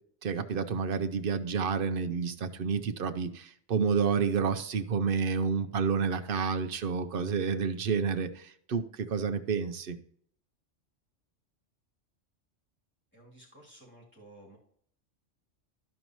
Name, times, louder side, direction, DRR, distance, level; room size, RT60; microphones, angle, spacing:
voice 1, 0.2-10.0, right 5 dB, 55° right, 10 dB, 0.8 m, -29 dB
voice 2, 13.1-14.6, right 1 dB, 10° left, -4 dB, 3.0 m, -54 dB
13.0 x 5.3 x 3.0 m, 0.62 s
omnidirectional pair, 1.2 m